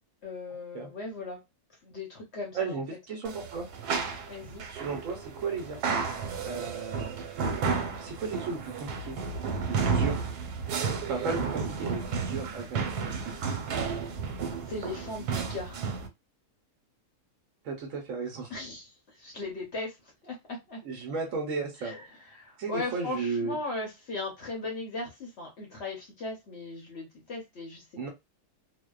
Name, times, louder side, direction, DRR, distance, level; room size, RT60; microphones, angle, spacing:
voice 1, 0.2-1.4 1.8-2.8 4.3-4.6 14.6-15.8 18.5-20.8 21.8-22.0 22.3-28.1, left 2 dB, 55° left, 0.8 m, -38 dB
voice 2, 2.5-3.7 4.7-6.2 6.4-7.2 8.0-9.2 9.7-10.2 11.0-13.3 17.6-18.5 20.8-21.9 22.6-23.6 28.0-28.1, right 4 dB, 65° right, 1.0 m, -35 dB
sound 1, 3.2-16.1, right 5 dB, 90° right, 1.2 m, -32 dB
2.6 x 2.1 x 2.2 m
omnidirectional pair, 1.6 m